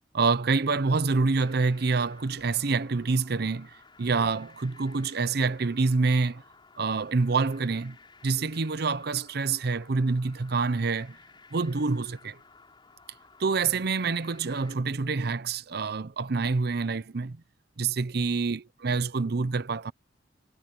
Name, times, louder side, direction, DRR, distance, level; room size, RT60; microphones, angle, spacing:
voice 1, 0.1-3.7 4.0-6.4 6.8-8.0 8.2-11.2 11.5-12.4 13.4-17.4 17.8-19.9, right 4 dB, 60° right, 0.7 m, -27 dB
sound 1, 1.4-14.7, left 4 dB, 25° left, 5.1 m, -55 dB
head